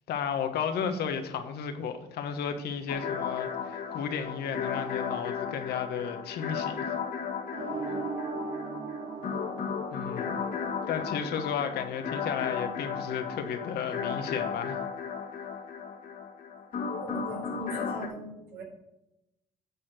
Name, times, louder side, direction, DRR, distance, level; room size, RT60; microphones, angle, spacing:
voice 1, 0.1-7.0 9.9-10.5 10.9-14.8, left 7 dB, 70° left, 7 dB, 1.2 m, -33 dB
sound 1, 2.9-18.1, left 6 dB, 55° left, 1.6 m, -35 dB
sound 2, 7.5-10.5, right 3 dB, 35° right, 1.2 m, -36 dB
voice 2, 17.0-18.6, right 2 dB, 75° right, -1 dB, 3.6 m, -40 dB
9.5 x 4.3 x 7.5 m, 0.87 s
cardioid pair, 110°, 17 cm